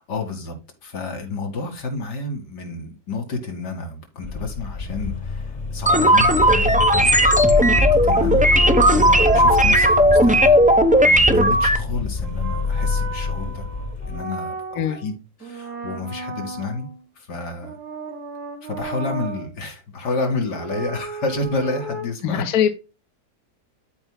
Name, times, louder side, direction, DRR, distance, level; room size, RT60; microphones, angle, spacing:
voice 1, 0.1-0.6 0.8-7.2 7.5-8.5 8.9-10.7 11.0-13.7 14.0-15.2 15.4-16.9 17.2-17.8 18.6-22.4, left 3 dB, 85° left, 2.6 m, -30 dB
sound 1, 4.2-14.2, left 5 dB, 30° left, 1.1 m, -26 dB
sound 2, 5.9-11.8, equal, 10° right, 0.5 m, -15 dB
sound 3, 6.8-11.1 12.2-15.1 15.4-17.0 17.6-19.5 20.5-22.0, right 2 dB, 70° right, 2.5 m, -34 dB
voice 2, 22.2-22.7, left 9 dB, 65° left, 1.3 m, -21 dB
13.0 x 4.9 x 2.2 m
omnidirectional pair, 1.7 m